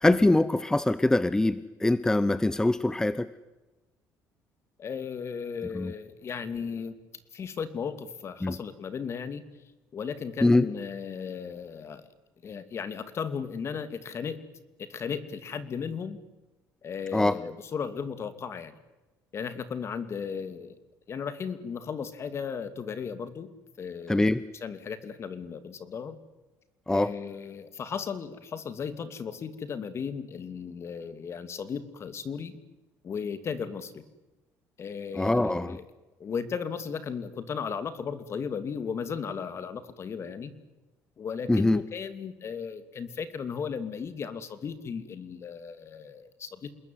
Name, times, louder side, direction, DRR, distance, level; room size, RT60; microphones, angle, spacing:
voice 1, 0.0-3.3 5.7-5.9 8.4-8.5 10.4-10.6 17.1-17.4 24.1-24.4 26.9-27.1 35.2-35.8 41.5-41.8, left 2 dB, 10° left, 15 dB, 0.9 m, -23 dB
voice 2, 4.8-6.9 7.3-9.4 9.9-12.1 12.4-14.4 14.8-16.2 16.8-18.7 19.3-20.8 21.1-23.5 23.8-24.3 24.6-26.2 26.9-32.6 33.0-34.0 34.8-35.8 36.2-40.5 41.2-46.7, left 6 dB, 45° left, 12 dB, 2.8 m, -35 dB
28.0 x 21.0 x 9.5 m, 1.1 s
cardioid pair, 105°, 7 cm